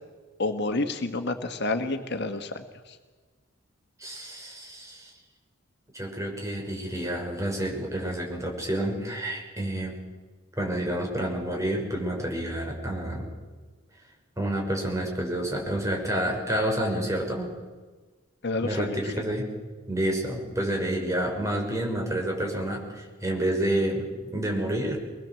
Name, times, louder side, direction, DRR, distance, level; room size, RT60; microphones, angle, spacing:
voice 1, 0.4-3.0 18.4-19.0, left 2 dB, 60° left, 7 dB, 1.7 m, -29 dB
voice 2, 4.0-5.1 5.9-9.9 10.6-13.3 14.4-17.5 18.6-19.5 19.9-25.0, right 1 dB, 15° right, 0 dB, 6.0 m, -29 dB
24.5 x 20.5 x 7.8 m, 1.3 s
head